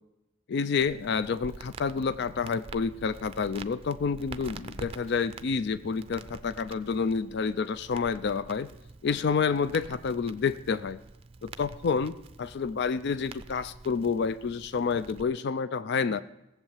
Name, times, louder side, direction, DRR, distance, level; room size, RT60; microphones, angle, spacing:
voice 1, 0.5-8.7 9.0-11.0 11.4-16.2, left 5 dB, 55° left, 15 dB, 0.4 m, -29 dB
Crackle, 0.8-15.2, right 3 dB, 30° right, 0.5 m, -47 dB
17.0 x 7.4 x 7.3 m, 0.93 s
head